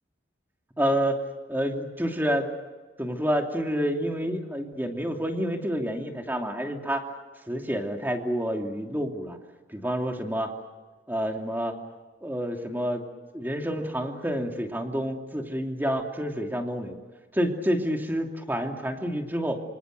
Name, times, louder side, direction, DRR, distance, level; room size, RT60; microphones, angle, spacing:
voice 1, 0.8-1.2 1.5-2.5 3.0-7.1 7.5-9.4 9.7-10.5 11.1-11.8 12.2-13.1 13.3-16.9 17.3-19.6, equal, 10° right, 3 dB, 2.8 m, -28 dB
27.0 x 26.0 x 6.7 m, 1.3 s
head